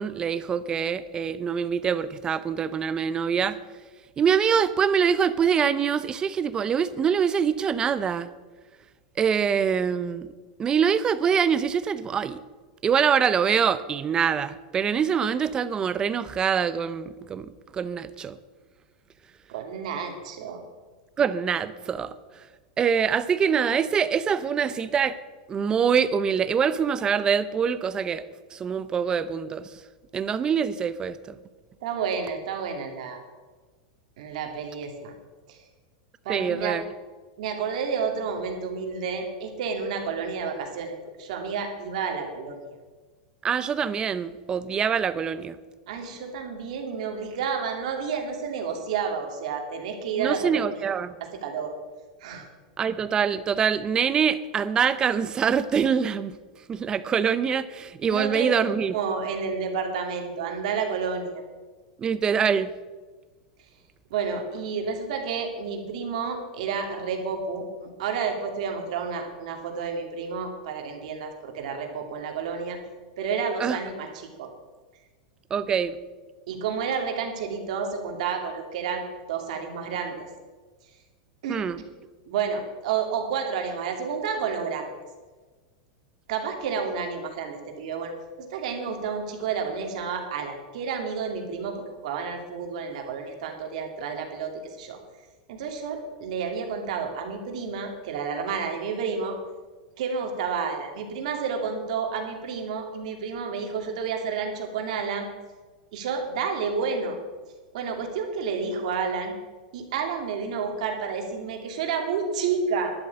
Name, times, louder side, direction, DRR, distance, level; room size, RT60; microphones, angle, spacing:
voice 1, 0.0-3.6 4.2-8.3 9.2-10.3 10.6-12.4 12.8-18.4 21.2-22.1 22.8-25.2 25.5-28.2 28.5-29.7 30.1-31.4 36.3-36.8 43.4-45.6 50.2-51.1 52.8-56.4 56.7-59.0 62.0-62.7 73.6-73.8 75.5-76.0 81.5-81.8, right 7 dB, 20° right, 15 dB, 0.6 m, -24 dB
voice 2, 19.5-20.6 31.8-33.2 34.2-35.1 35.5-35.6 36.2-36.8 37.4-42.6 45.9-50.7 51.4-51.7 52.2-52.5 58.1-61.4 64.1-67.7 68.0-72.8 73.2-74.5 76.5-79.0 79.3-80.3 81.4-81.6 82.3-84.9 86.3-88.1 88.5-95.0 95.5-99.3 100.0-105.3 105.9-107.2 107.7-109.3 109.7-112.9, right 6 dB, 65° right, 3 dB, 2.8 m, -30 dB
11.5 x 7.7 x 8.5 m, 1.3 s
supercardioid pair, 150°, 4 cm